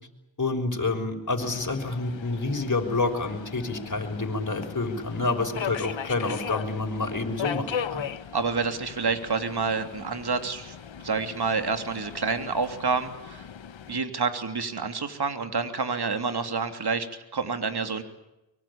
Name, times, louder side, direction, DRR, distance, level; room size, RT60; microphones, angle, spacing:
voice 1, 0.4-8.0, left 3 dB, 40° left, 4 dB, 6.1 m, -28 dB
Subway metro underground, 1.4-14.0, left 8 dB, 85° left, 1.5 m, -38 dB
voice 2, 8.3-10.8 11.0-13.5 13.9-17.1 17.3-18.0, right 4 dB, 60° right, 8 dB, 3.1 m, -28 dB
24.5 x 23.5 x 8.8 m, 0.93 s
cardioid pair, 55°, 44 cm